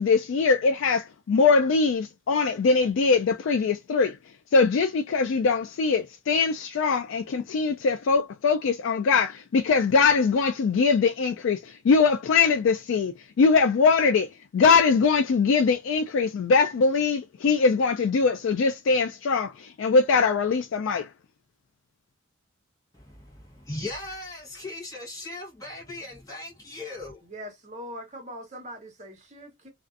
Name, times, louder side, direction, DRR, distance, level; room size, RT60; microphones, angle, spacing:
voice 1, 0.0-4.2 4.5-21.1, left 4 dB, 65° left, 0.3 m, -22 dB
voice 2, 22.9-27.2, left 2 dB, 15° left, 0.9 m, -38 dB
voice 3, 27.3-29.7, equal, 35° right, 0.9 m, -41 dB
2.5 x 2.4 x 2.3 m
head